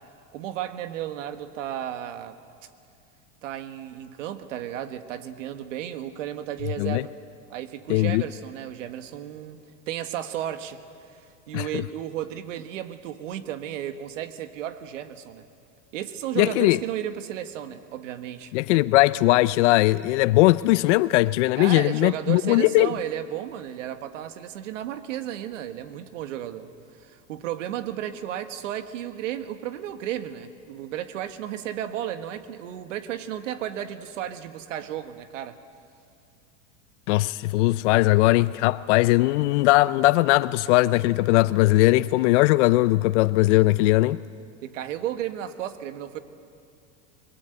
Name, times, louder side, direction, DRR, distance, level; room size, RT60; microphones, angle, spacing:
voice 1, 0.3-2.4 3.4-7.1 7.5-9.6 9.9-10.8 11.1-15.4 15.9-18.5 21.6-26.7 27.0-35.6 44.6-46.2, right 11 dB, 80° right, 1.6 m, -33 dB
voice 2, 7.9-8.2 11.5-11.8 16.4-16.8 18.5-22.9 37.1-44.2, left 18 dB, 70° left, 0.6 m, -20 dB
25.5 x 21.0 x 8.0 m
supercardioid pair, 135°, 37 cm